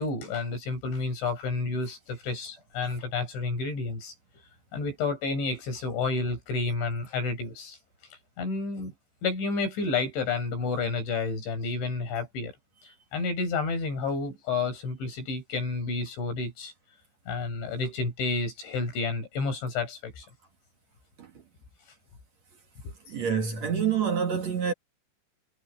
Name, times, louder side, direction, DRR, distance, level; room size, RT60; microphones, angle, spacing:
voice 1, 0.0-4.1 4.7-7.8 8.4-8.9 9.2-12.5 13.1-16.7 17.3-20.3 22.8-22.9, left 4 dB, 75° left, 9.6 m, -30 dB
voice 2, 23.1-24.7, right 7 dB, 50° right, 2.2 m, -27 dB
omnidirectional pair, 5.4 m